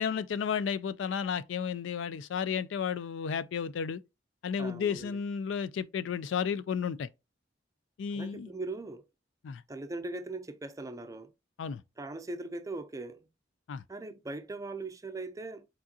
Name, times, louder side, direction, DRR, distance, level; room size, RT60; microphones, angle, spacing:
voice 1, 0.0-4.0 4.4-7.1 8.0-8.5 9.4-9.6 11.6-11.8 13.7-13.8, left 7 dB, 70° left, 0.4 m, -32 dB
voice 2, 4.6-5.2 8.1-9.0 9.7-11.3 12.0-13.3 13.9-15.7, right 2 dB, 15° right, 0.4 m, -40 dB
4.8 x 3.7 x 2.8 m
head